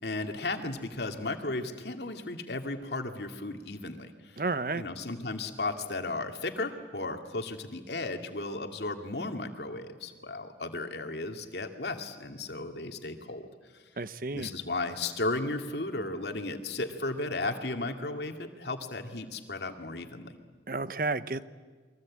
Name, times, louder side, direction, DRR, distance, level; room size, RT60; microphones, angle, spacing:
voice 1, 0.0-4.4 4.7-13.5 14.3-20.4, left 2 dB, 75° left, 5 dB, 2.3 m, -35 dB
voice 2, 4.4-4.8 14.0-14.5 20.7-21.5, right 3 dB, 50° right, 14 dB, 0.8 m, -31 dB
29.5 x 23.0 x 8.6 m, 1.4 s
head